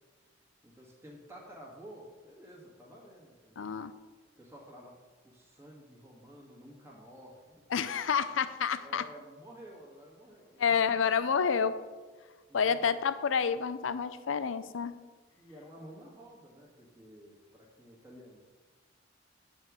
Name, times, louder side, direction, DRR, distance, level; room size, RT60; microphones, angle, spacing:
voice 1, 0.6-3.7 4.4-4.9 5.2-7.5 8.8-11.7 12.5-12.9 15.4-18.4, equal, 15° right, -3 dB, 1.7 m, -52 dB
voice 2, 3.6-3.9 7.7-9.1 10.6-11.8 12.5-14.9, left 6 dB, 80° left, 13 dB, 0.5 m, -29 dB
8.6 x 4.4 x 6.2 m, 1.4 s
head